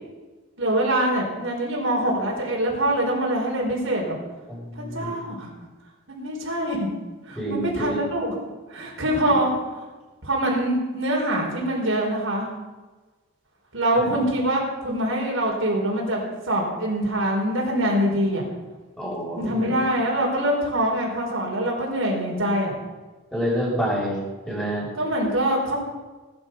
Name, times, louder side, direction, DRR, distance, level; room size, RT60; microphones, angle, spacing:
voice 1, 0.6-4.2 4.8-5.5 6.1-6.9 7.3-8.3 8.7-9.5 10.2-12.5 13.7-18.4 19.4-22.7 25.0-25.8, right 1 dB, 65° right, -2 dB, 4.6 m, -24 dB
voice 2, 4.5-5.1 7.3-8.1 14.0-14.1 19.0-19.7 23.3-24.9, equal, 5° left, -6 dB, 6.8 m, -28 dB
19.5 x 12.5 x 5.6 m, 1.2 s
head